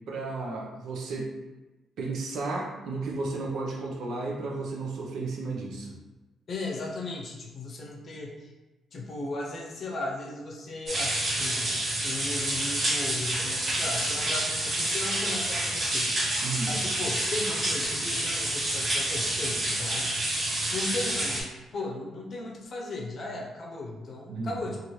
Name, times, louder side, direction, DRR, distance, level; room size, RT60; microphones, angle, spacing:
voice 1, 0.1-1.3 2.0-6.0 16.4-16.8 24.3-24.6, right 3 dB, 75° right, -1 dB, 0.6 m, -33 dB
voice 2, 6.5-8.5 8.9-11.7 12.0-16.4 16.7-20.1 20.7-24.9, left 2 dB, 50° left, 0 dB, 0.6 m, -36 dB
sound 1, 10.9-21.4, right 1 dB, 40° right, 0.9 m, -28 dB
2.7 x 2.5 x 3.1 m, 1.1 s
cardioid pair, 90°, 0 cm